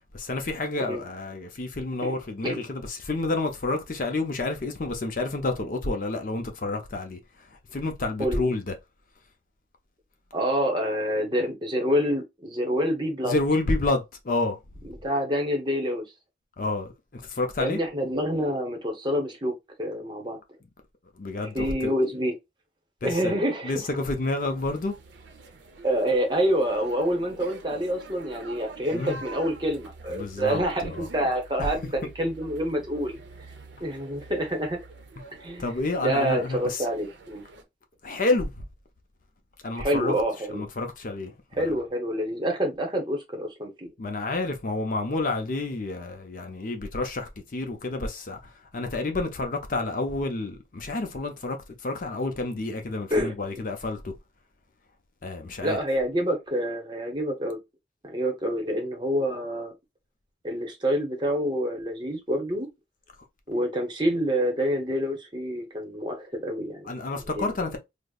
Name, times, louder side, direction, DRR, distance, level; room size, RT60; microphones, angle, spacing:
voice 1, 0.1-8.7 13.2-14.6 16.6-17.8 21.2-21.9 23.0-23.3 23.6-24.9 28.9-29.2 30.1-31.1 31.6-31.7 35.6-36.9 38.0-38.6 39.6-40.2 40.5-41.7 44.0-54.1 55.2-55.8 66.8-67.8, left 2 dB, 45° left, 0.5 m, -29 dB
voice 2, 10.3-13.4 14.8-16.0 17.6-20.4 21.5-22.3 23.0-23.7 25.8-33.2 33.8-34.8 35.3-35.6 36.0-37.4 39.8-40.7 41.5-43.9 53.1-53.3 55.6-57.6 58.0-59.7 60.4-62.7 63.5-66.9 67.3-67.5, equal, 25° right, 0.8 m, -27 dB
sound 1, 24.4-37.6, right 3 dB, 75° right, 0.7 m, -46 dB
5.0 x 2.0 x 2.3 m
head